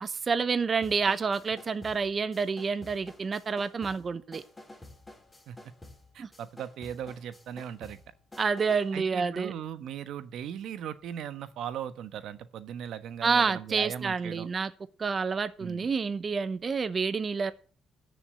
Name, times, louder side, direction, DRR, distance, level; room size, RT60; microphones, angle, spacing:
voice 1, 0.0-4.4 6.2-6.3 8.4-9.5 13.2-14.7 15.0-17.5, right 5 dB, 40° right, 0.9 m, -28 dB
sound 1, 0.8-9.0, left 1 dB, 15° left, 5.4 m, -51 dB
voice 2, 6.1-8.0 8.9-14.5 15.6-15.9, right 9 dB, 80° right, 1.2 m, -38 dB
14.0 x 7.0 x 8.4 m
cardioid pair, 90°, 0 cm